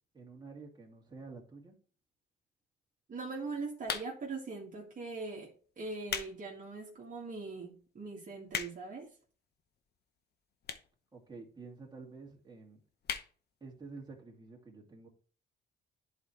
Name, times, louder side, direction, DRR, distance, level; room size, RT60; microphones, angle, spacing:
voice 1, 0.1-1.7 11.1-12.8 13.6-15.1, right 4 dB, 20° right, 2.5 m, -49 dB
voice 2, 3.1-9.1, right 3 dB, 40° right, 1.9 m, -41 dB
sound 1, 3.8-4.4 5.1-5.3 5.8-6.4 6.8-6.9 7.5-7.6 7.8-7.9 8.1-9.0 9.8-9.9 10.6-11.0 11.3-11.4 11.6-11.7 11.9-12.0 12.3-12.5 13.0-13.3 13.7-13.8 14.0-14.1, left 7 dB, 55° left, 0.9 m, -37 dB
11.0 x 4.3 x 3.2 m
cardioid pair, 90°, 20 cm